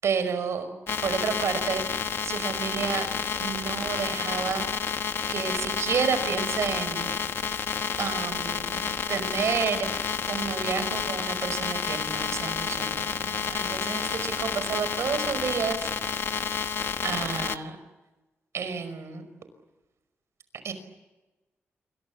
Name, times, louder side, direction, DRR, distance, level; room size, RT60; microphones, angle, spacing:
voice 1, 0.0-0.7 1.0-3.1 3.4-4.7 5.3-7.1 8.0-16.4 17.0-17.8 18.5-19.2 20.6-20.7, right 6 dB, 75° right, 11 dB, 5.4 m, -30 dB
sound 1, 0.9-17.6, left 6 dB, 55° left, 1.2 m, -30 dB
28.5 x 25.0 x 7.4 m, 1.1 s
wide cardioid pair, 175°, 5 cm